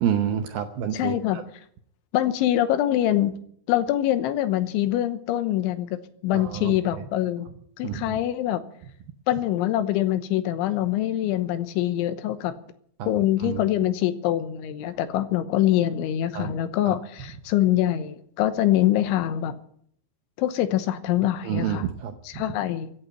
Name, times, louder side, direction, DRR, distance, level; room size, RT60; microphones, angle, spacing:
voice 1, 0.0-1.4 6.3-7.0 7.8-8.2 13.0-13.1 13.4-13.6 16.3-16.6 16.9-17.0 21.4-22.4, right 9 dB, 75° right, 6 dB, 2.3 m, -29 dB
voice 2, 0.9-1.4 2.1-3.3 3.7-7.5 7.8-8.6 9.3-12.5 13.1-19.5 20.4-21.8 22.4-22.9, left 13 dB, 85° left, 12 dB, 3.4 m, -24 dB
16.0 x 9.0 x 9.6 m, 0.65 s
omnidirectional pair, 5.4 m